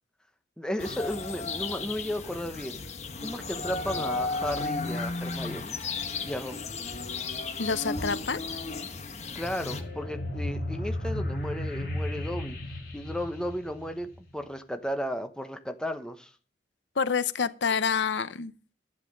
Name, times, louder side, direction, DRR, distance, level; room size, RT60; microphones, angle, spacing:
voice 1, 0.6-2.8 3.2-5.8 6.2-6.6 9.3-12.6 12.9-16.3, equal, 5° left, 1.0 m, -34 dB
sound 1, 0.8-9.8, left 3 dB, 35° left, 1.3 m, -34 dB
voice 2, 7.6-8.4 17.0-18.5, left 5 dB, 80° left, 0.8 m, -27 dB
sound 2, 9.4-14.3, left 1 dB, 55° left, 4.2 m, -34 dB
11.5 x 9.6 x 5.3 m
head